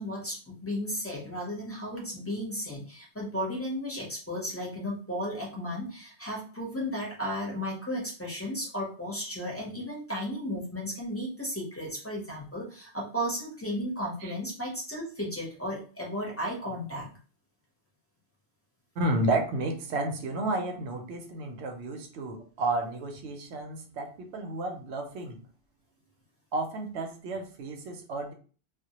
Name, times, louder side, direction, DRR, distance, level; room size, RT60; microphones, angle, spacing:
voice 1, 0.0-17.1, equal, 15° left, -3 dB, 0.5 m, -34 dB
voice 2, 19.0-25.4 26.5-28.3, right 2 dB, 85° right, 4 dB, 0.9 m, -32 dB
2.1 x 2.0 x 2.8 m, 0.40 s
omnidirectional pair, 1.1 m